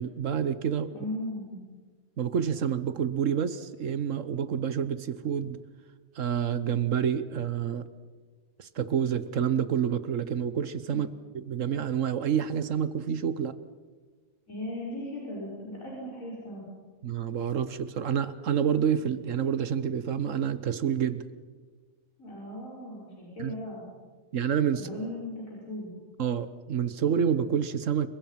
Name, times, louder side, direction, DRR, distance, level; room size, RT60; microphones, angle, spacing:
voice 1, 0.0-0.9 2.2-5.6 6.2-7.9 8.6-11.1 11.5-13.5 17.0-21.3 23.4-23.5 24.3-24.9 26.2-28.1, right 8 dB, 65° right, 13 dB, 1.3 m, -28 dB
voice 2, 0.9-1.5 10.9-11.0 14.5-16.6 22.2-23.8 24.8-25.9, left 1 dB, 75° left, -6 dB, 6.2 m, -37 dB
29.0 x 23.5 x 5.8 m, 1.4 s
omnidirectional pair, 1.4 m